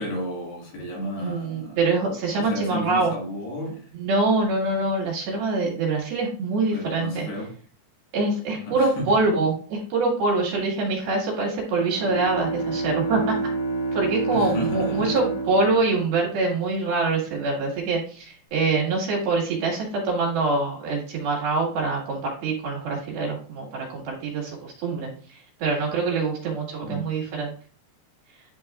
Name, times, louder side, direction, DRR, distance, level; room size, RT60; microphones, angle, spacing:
voice 1, 0.0-1.8 2.3-3.9 6.7-7.6 8.7-9.2 14.3-15.2 26.8-27.1, equal, 75° left, 4.0 m, -32 dB
voice 2, 1.2-3.1 3.9-7.3 8.1-13.4 13.9-27.5, right 3 dB, 65° right, 3.7 m, -25 dB
Bowed string instrument, 11.7-16.9, right 3 dB, 50° left, 3.5 m, -29 dB
11.0 x 4.6 x 2.4 m
omnidirectional pair, 4.9 m